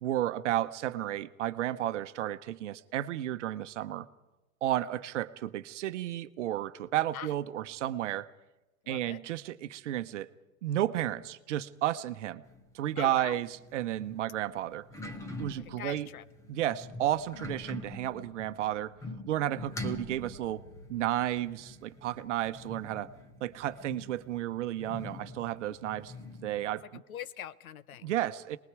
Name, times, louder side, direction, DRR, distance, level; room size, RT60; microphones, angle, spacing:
voice 1, 0.0-4.1 4.6-8.3 8.9-10.3 10.6-12.4 12.7-13.5 13.7-14.8 15.4-16.1 16.5-18.9 19.3-20.6 20.9-23.1 23.4-26.1 26.4-27.0 28.0-28.6, right 13 dB, 60° right, 12 dB, 1.1 m, -32 dB
voice 2, 8.8-9.2 13.0-13.4 15.6-16.2 25.6-25.8 26.9-28.1, left 10 dB, 80° left, 17 dB, 1.1 m, -42 dB
sound 1, 12.4-26.6, left 2 dB, 5° left, 0.9 m, -45 dB
27.0 x 20.5 x 4.8 m, 1.0 s
supercardioid pair, 165°, 42 cm